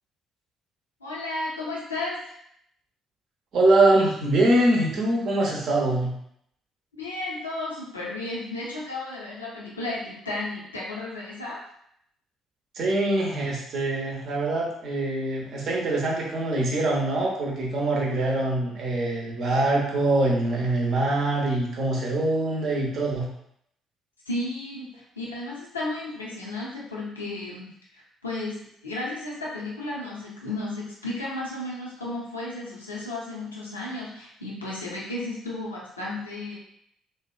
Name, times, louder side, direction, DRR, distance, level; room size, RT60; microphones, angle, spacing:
voice 1, 1.0-2.2 6.9-11.6 24.3-28.6 28.8-36.6, left 2 dB, 85° left, -5 dB, 0.5 m, -33 dB
voice 2, 3.5-6.1 12.7-23.3, right 2 dB, 55° right, -2 dB, 0.7 m, -23 dB
2.7 x 2.2 x 2.4 m, 0.71 s
figure-of-eight pair, 45°, 0 cm